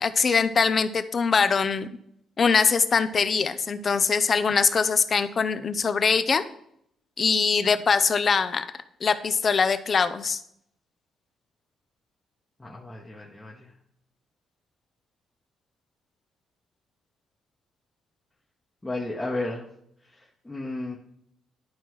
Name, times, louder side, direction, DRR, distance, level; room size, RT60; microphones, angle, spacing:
voice 1, 0.0-1.9 2.4-6.4 7.2-8.7 9.0-10.4, left 5 dB, 40° left, 12 dB, 0.5 m, -22 dB
voice 2, 12.6-13.7 18.8-19.6 20.4-21.0, left 2 dB, 15° left, -3 dB, 1.0 m, -33 dB
11.0 x 4.5 x 3.1 m, 0.72 s
cardioid pair, 90°, 0 cm